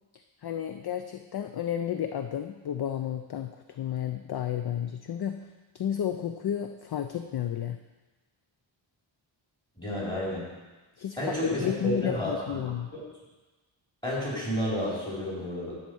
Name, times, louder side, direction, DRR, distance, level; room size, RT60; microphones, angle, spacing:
voice 1, 0.4-7.8 11.0-12.9, left 9 dB, 50° left, 7 dB, 0.5 m, -32 dB
voice 2, 9.8-10.5 11.2-12.6 12.9-13.0 14.0-15.7, left 1 dB, 10° left, -7 dB, 3.8 m, -31 dB
10.5 x 4.3 x 7.7 m, 1.2 s
wide cardioid pair, 165°, 49 cm